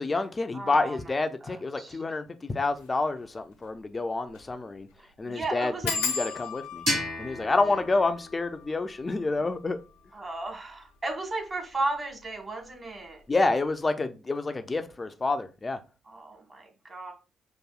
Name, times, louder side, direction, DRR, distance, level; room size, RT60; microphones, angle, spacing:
voice 1, 0.0-4.9 5.2-5.7 6.0-6.8 7.2-9.8 13.3-15.8, left 3 dB, 30° left, 0.5 m, -28 dB
voice 2, 0.5-2.0 5.0-6.0 7.6-7.7 10.1-13.2 16.0-17.1, right 2 dB, 35° right, 1.5 m, -35 dB
sound 1, 2.7-2.9 3.3-3.4 3.6-3.7 4.3-4.5 4.8-4.9 5.8-11.1 11.8-12.3 12.6-13.0 13.2-13.3, left 5 dB, 75° left, 0.5 m, -37 dB
sound 2, 6.9-9.7, equal, 70° right, 1.9 m, -34 dB
6.0 x 2.6 x 2.3 m
figure-of-eight pair, 40°, 0 cm